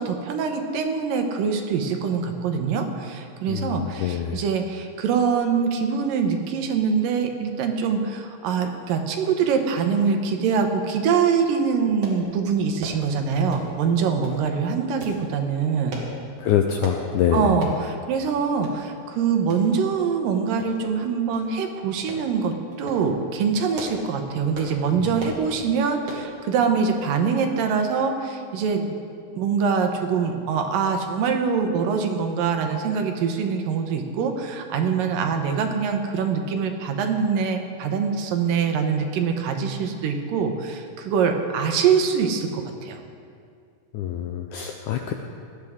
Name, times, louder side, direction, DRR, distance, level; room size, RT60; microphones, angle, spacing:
voice 1, 0.0-16.0 17.3-29.0 29.4-43.0, right 6 dB, 75° right, 5 dB, 2.6 m, -24 dB
voice 2, 3.5-4.4 16.4-17.5 43.9-45.1, left 9 dB, 85° left, 4 dB, 1.8 m, -25 dB
sound 1, 12.0-12.2 12.8-13.0 13.5-13.8 14.2-14.4 15.0-15.2 15.9-16.1 16.8-17.0 17.6-17.8 18.2-18.3 18.6-18.8 19.5-19.6 20.6-21.0 21.3-21.5 22.1-22.3 22.7-23.0 23.5-24.1 24.5-24.8 25.2-25.4 26.0-26.3 26.8-27.0 27.3-27.4, equal, 50° right, 2.6 m, -36 dB
18.0 x 12.5 x 3.6 m, 2.3 s
omnidirectional pair, 4.1 m